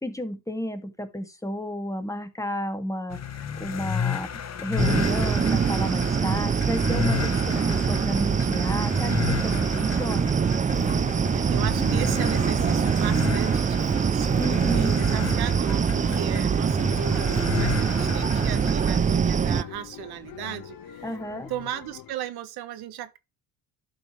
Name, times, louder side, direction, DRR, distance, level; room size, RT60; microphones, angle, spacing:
voice 1, 0.0-4.3 4.6-10.4 14.4-15.0 21.0-21.5, left 1 dB, 10° left, 2.3 m, -32 dB
sound 1, 3.1-19.0, left 8 dB, 40° left, 1.7 m, -33 dB
sound 2, 4.8-19.6, right 6 dB, 20° right, 0.5 m, -24 dB
sound 3, 10.7-22.1, left 11 dB, 60° left, 1.5 m, -43 dB
voice 2, 11.3-21.2 21.5-23.2, right 12 dB, 65° right, 1.4 m, -36 dB
12.0 x 5.6 x 3.3 m
supercardioid pair, 85°, 41 cm